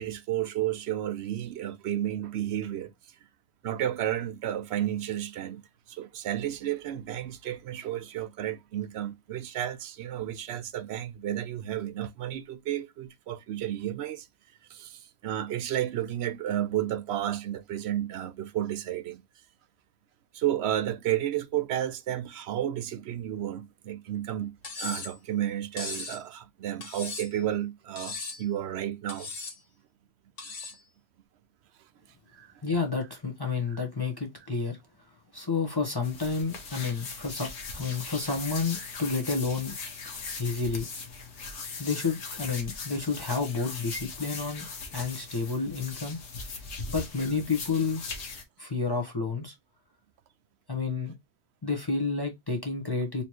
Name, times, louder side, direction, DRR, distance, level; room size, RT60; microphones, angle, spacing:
voice 1, 0.0-2.9 3.6-5.6 5.9-14.3 14.7-19.2 20.3-29.3 32.3-32.5, right 11 dB, 70° right, 0.8 m, -32 dB
Cutlery silverware, 24.6-25.2 25.8-26.2 26.8-27.4 28.0-28.5 29.1-29.6 30.4-30.8, left 3 dB, 55° left, 1.3 m, -38 dB
voice 2, 32.6-34.8 35.3-39.7 40.4-40.9 41.8-44.7 44.9-46.2 46.9-48.1 48.6-49.5 50.7-51.1 51.6-53.2, left 4 dB, 20° left, 1.0 m, -30 dB
sound 1, 36.0-48.4, left 4 dB, 80° left, 1.4 m, -39 dB
4.3 x 3.1 x 3.0 m
omnidirectional pair, 1.2 m